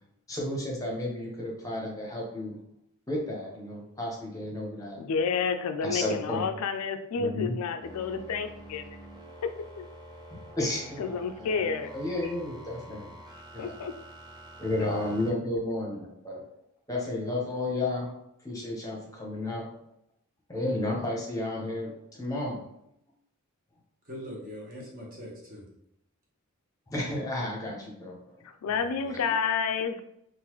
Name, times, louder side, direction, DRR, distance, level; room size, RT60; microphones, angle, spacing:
voice 1, 0.3-2.6 3.1-5.0 5.8-6.4 7.1-7.5 10.3-11.0 11.4-13.1 13.5-13.7 14.6-16.4 16.9-18.1 18.4-19.7 20.5-21.9 22.2-22.6 26.9-28.2, left 1 dB, 15° left, -3 dB, 0.9 m, -32 dB
voice 2, 5.0-8.8 9.4-9.9 11.0-11.9 13.6-14.0 14.8-15.1 28.4-30.0, left 6 dB, 75° left, 8 dB, 0.3 m, -30 dB
sound 1, 7.8-15.3, right 1 dB, 20° right, 0.5 m, -48 dB
voice 3, 24.0-25.7 28.7-29.1, equal, 40° right, -3 dB, 1.1 m, -42 dB
3.9 x 2.5 x 3.0 m, 0.75 s
head